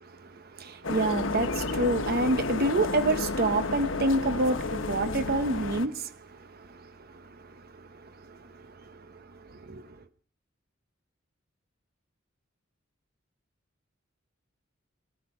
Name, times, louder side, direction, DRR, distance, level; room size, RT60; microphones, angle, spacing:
voice 1, 0.3-6.1 6.6-6.8 7.1-7.2 7.5-7.6 8.3-8.4 8.9-9.0 9.6-9.9, right 2 dB, 50° right, 1.0 m, -27 dB
sound 1, 0.8-5.9, left 3 dB, 70° left, 1.1 m, -31 dB
20.0 x 15.0 x 4.4 m
head